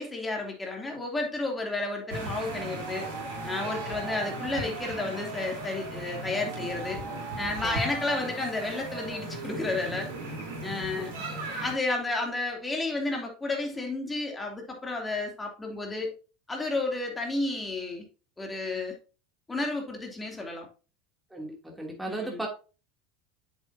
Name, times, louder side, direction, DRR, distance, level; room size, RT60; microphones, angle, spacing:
voice 1, 0.0-3.1 3.4-7.0 7.4-10.1 10.6-11.1 11.6-16.1 16.5-18.0 18.4-18.9 19.5-20.7 22.1-22.4, left 2 dB, 15° left, 1 dB, 2.9 m, -32 dB
sound 1, 1.9-9.2, right 5 dB, 30° right, 2.5 m, -42 dB
sound 2, 2.1-11.8, right 1 dB, 75° right, 3.6 m, -37 dB
voice 2, 21.3-22.5, right 2 dB, 5° right, 0 dB, 2.8 m, -37 dB
7.9 x 7.1 x 2.8 m, 0.34 s
hypercardioid pair, 75°, 0 cm